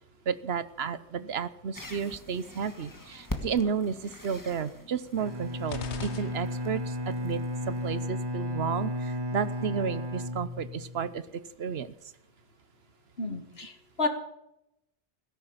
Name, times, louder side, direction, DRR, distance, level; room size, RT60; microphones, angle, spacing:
voice 1, 0.3-7.4 7.7-11.9, right 6 dB, 70° right, 15 dB, 1.0 m, -32 dB
sound 1, 1.7-8.0, left 1 dB, 15° left, 1.6 m, -44 dB
Bowed string instrument, 5.2-11.2, left 1 dB, 25° right, 1.1 m, -34 dB
sound 2, 5.7-7.0, left 6 dB, 85° left, 1.3 m, -41 dB
voice 2, 13.2-14.1, left 2 dB, 65° left, 7 dB, 2.2 m, -31 dB
17.0 x 10.5 x 7.2 m, 0.82 s
omnidirectional pair, 1.1 m